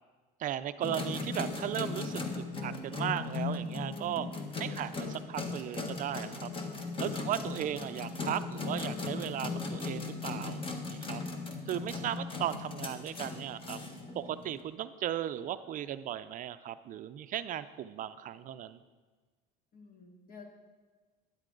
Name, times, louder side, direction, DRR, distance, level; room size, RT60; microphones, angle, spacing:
voice 1, 0.4-2.2 2.6-4.3 4.6-6.5 7.0-11.2 11.7-13.8 14.2-18.8, right 11 dB, 45° right, 12 dB, 0.5 m, -36 dB
sound 1, 0.8-14.6, left 3 dB, 30° left, 1.5 m, -37 dB
voice 2, 19.7-20.5, left 4 dB, 55° left, 2 dB, 2.2 m, -52 dB
12.5 x 10.0 x 3.9 m, 1.4 s
cardioid pair, 115°, 18 cm